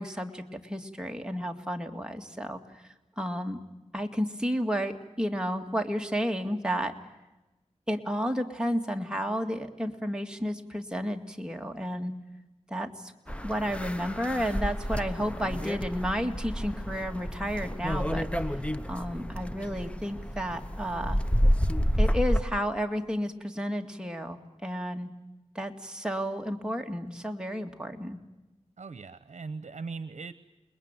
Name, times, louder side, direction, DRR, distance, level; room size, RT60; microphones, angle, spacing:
voice 1, 0.0-2.6 3.2-3.6 3.9-7.0 7.9-12.1 12.7-13.1 13.4-18.6 18.9-21.2 22.0-25.1 25.5-28.2, equal, 5° right, 3 dB, 2.2 m, -32 dB
sound 1, 13.3-22.4, equal, 10° left, 0.9 m, -29 dB
voice 2, 28.8-30.3, right 4 dB, 75° right, 13 dB, 0.9 m, -39 dB
28.5 x 21.0 x 9.0 m, 1.0 s
wide cardioid pair, 85°, 12 cm